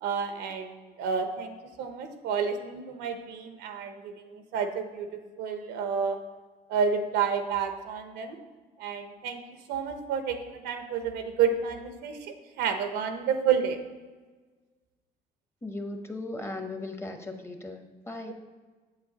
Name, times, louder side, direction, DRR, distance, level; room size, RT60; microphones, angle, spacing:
voice 1, 0.0-5.1 5.4-6.2 6.7-8.4 8.8-9.4 9.7-13.8 18.2-18.3, right 6 dB, 90° right, 7 dB, 0.8 m, -30 dB
voice 2, 15.6-18.3, left 2 dB, 15° left, 5 dB, 0.8 m, -37 dB
7.5 x 6.9 x 2.8 m, 1.4 s
cardioid pair, 110°, 17 cm